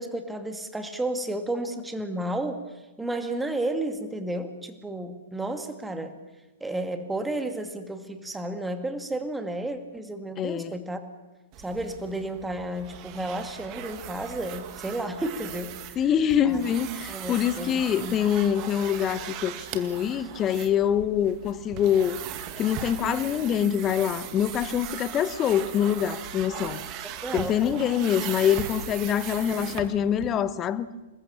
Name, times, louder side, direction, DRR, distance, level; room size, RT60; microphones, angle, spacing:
voice 1, 0.0-2.6 3.0-6.2 6.6-11.0 11.6-16.0 16.4-16.6 17.1-18.2 23.0-23.5 27.0-27.6, right 1 dB, 5° right, 2.4 m, -32 dB
voice 2, 10.4-10.8 15.9-22.2 22.6-26.8 27.3-30.9, left 9 dB, 25° left, 1.2 m, -25 dB
sound 1, 11.5-30.3, right 9 dB, 35° right, 2.1 m, -39 dB
28.0 x 21.0 x 7.2 m
figure-of-eight pair, 110°, 0 cm